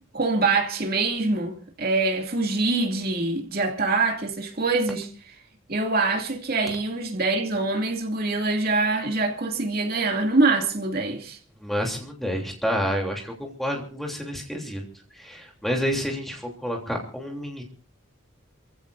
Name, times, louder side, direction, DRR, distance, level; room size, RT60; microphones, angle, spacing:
voice 1, 0.1-5.3 5.7-11.4, right 3 dB, 45° right, 2.6 m, -24 dB
voice 2, 11.6-14.8 15.2-17.6, equal, ahead, 3.2 m, -29 dB
28.0 x 15.5 x 2.6 m
head